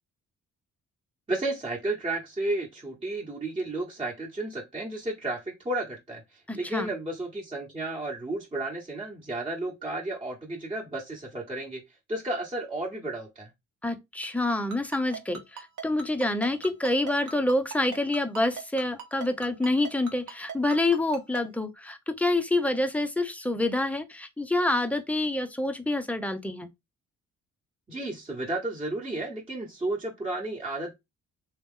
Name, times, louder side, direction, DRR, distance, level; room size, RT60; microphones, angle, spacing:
voice 1, 1.3-11.8 12.1-13.5 27.9-30.9, right 2 dB, 20° right, 1.1 m, -32 dB
voice 2, 6.5-6.9 13.8-26.7, left 2 dB, 5° left, 0.6 m, -27 dB
Ringtone, 14.7-21.4, right 5 dB, 75° right, 1.2 m, -38 dB
3.5 x 2.9 x 3.6 m
cardioid pair, 90°, 30 cm